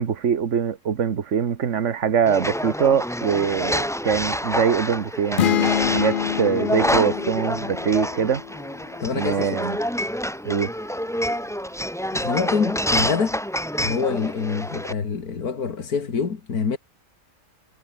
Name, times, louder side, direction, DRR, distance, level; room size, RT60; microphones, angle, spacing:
voice 1, 0.0-8.4 9.1-9.8 10.4-10.7, right 7 dB, 55° right, 1.6 m, -23 dB
sound 1, 2.3-14.9, equal, ahead, 1.6 m, -27 dB
sound 2, 5.4-9.1, left 10 dB, 65° left, 0.5 m, -26 dB
voice 2, 9.0-9.6 12.1-13.4 13.8-16.8, left 5 dB, 85° left, 2.6 m, -26 dB
omnidirectional pair, 1.6 m